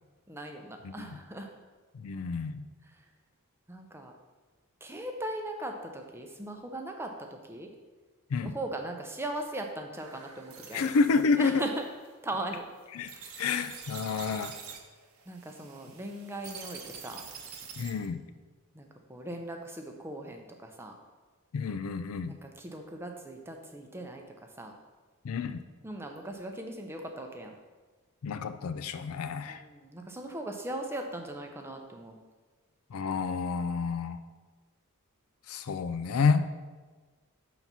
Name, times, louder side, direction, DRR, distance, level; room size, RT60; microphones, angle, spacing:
voice 1, 0.3-1.5 3.7-4.1 4.8-7.1 7.4-7.7 8.4-10.9 11.4-11.8 12.2-12.6 13.1-13.4 15.3-17.2 18.7-20.9 22.3-24.2 24.6-24.7 25.8-27.5 29.5-32.2, right 1 dB, 10° right, 3 dB, 0.5 m, -39 dB
voice 2, 0.8-1.2 1.9-2.6 8.3-8.5 10.7-11.6 12.9-13.1 13.4-14.5 17.8-18.2 21.5-22.3 25.2-25.6 28.2-29.6 32.9-34.2 35.5-36.4, left 4 dB, 70° left, 11 dB, 0.4 m, -29 dB
sound 1, 10.0-18.1, right 6 dB, 70° right, 0.8 m, -47 dB
5.7 x 3.9 x 6.0 m, 1.3 s
head